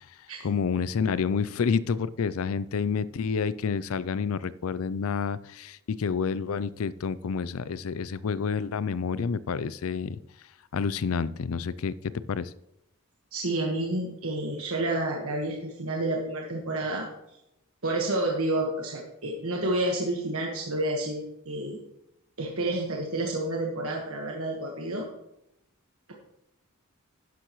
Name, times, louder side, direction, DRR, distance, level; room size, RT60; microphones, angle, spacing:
voice 1, 0.4-10.2 10.7-11.9 12.3-12.5, left 6 dB, 70° left, 18 dB, 0.4 m, -29 dB
voice 2, 13.3-17.1 17.8-21.8 22.4-25.1, right 1 dB, 70° right, -1 dB, 1.5 m, -29 dB
12.0 x 10.0 x 3.1 m, 0.83 s
head